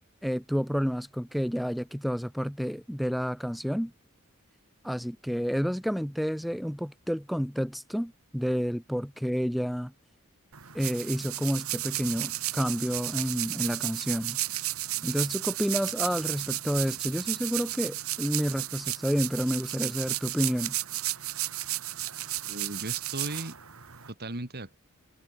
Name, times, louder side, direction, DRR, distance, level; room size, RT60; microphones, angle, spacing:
voice 1, 0.2-3.9 4.8-9.9 10.7-14.4 15.0-20.7, equal, ahead, 1.0 m, -30 dB
sound 1, 10.5-24.1, right 15 dB, 75° right, 2.1 m, -33 dB
voice 2, 22.4-23.5 24.2-24.7, right 2 dB, 50° right, 3.3 m, -36 dB
head